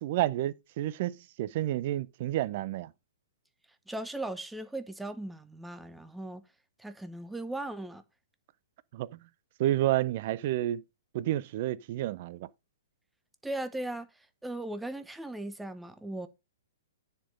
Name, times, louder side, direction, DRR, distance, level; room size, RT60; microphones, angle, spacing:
voice 1, 0.0-2.9 8.9-9.2 9.6-10.8 11.1-12.5, right 14 dB, 45° right, 0.5 m, -30 dB
voice 2, 3.9-6.5 6.8-8.0 13.4-16.3, right 1 dB, 5° right, 0.7 m, -38 dB
10.0 x 4.5 x 5.2 m
figure-of-eight pair, 115°, 0 cm